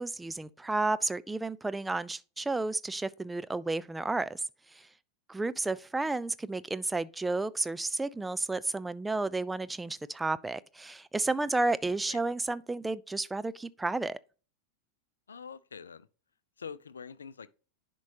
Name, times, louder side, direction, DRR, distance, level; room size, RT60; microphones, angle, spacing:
voice 1, 0.0-4.4 4.7-4.9 5.3-14.2, right 2 dB, 10° right, 0.4 m, -32 dB
voice 2, 15.3-16.1 16.6-17.5, left 6 dB, 70° left, 0.5 m, -44 dB
10.5 x 5.3 x 2.8 m
figure-of-eight pair, 90°, 0 cm